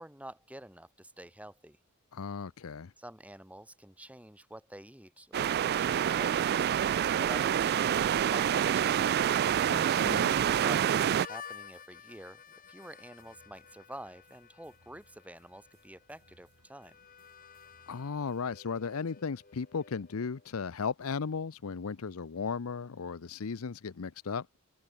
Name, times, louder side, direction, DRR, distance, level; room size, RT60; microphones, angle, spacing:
voice 1, 0.0-1.8 3.0-6.7 7.2-9.4 10.3-12.4 12.7-17.0, right 1 dB, 5° right, 3.0 m, -48 dB
voice 2, 2.1-2.9 9.6-10.5 17.9-24.5, left 5 dB, 75° left, 0.6 m, -36 dB
sound 1, 5.3-11.3, right 9 dB, 45° right, 0.3 m, -27 dB
Harmonica, 10.9-20.5, left 7 dB, 40° left, 2.1 m, -52 dB
sound 2, 11.4-18.5, right 2 dB, 75° right, 4.3 m, -69 dB
head